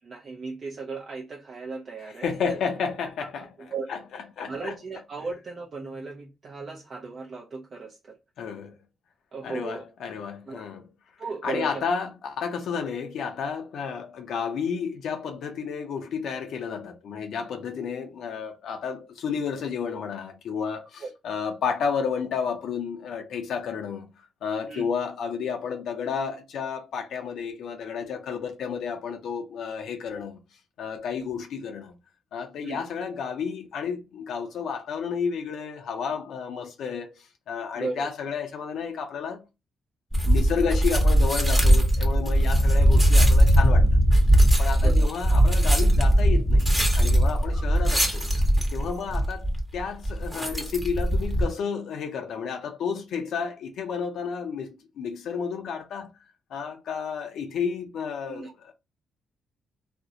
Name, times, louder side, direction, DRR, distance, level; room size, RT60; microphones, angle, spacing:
voice 1, 0.0-2.6 3.6-3.9 4.5-8.2 9.3-9.8 10.5-10.6 11.2-11.8 21.0-21.1 24.7-24.9 32.6-32.8 37.7-38.1 44.8-45.1 47.5-47.6 58.3-58.5, right 4 dB, 50° right, 0.5 m, -36 dB
voice 2, 2.2-4.0 4.4-4.7 8.4-8.7 9.4-10.9 11.4-24.1 24.4-30.4 30.8-31.9 32.3-39.4 40.3-43.9 44.6-46.7 47.0-48.3 48.7-56.1 56.5-58.7, left 6 dB, 75° left, 0.4 m, -31 dB
sound 1, 40.1-51.5, equal, 10° right, 0.9 m, -20 dB
2.4 x 2.0 x 2.6 m
cardioid pair, 75°, 0 cm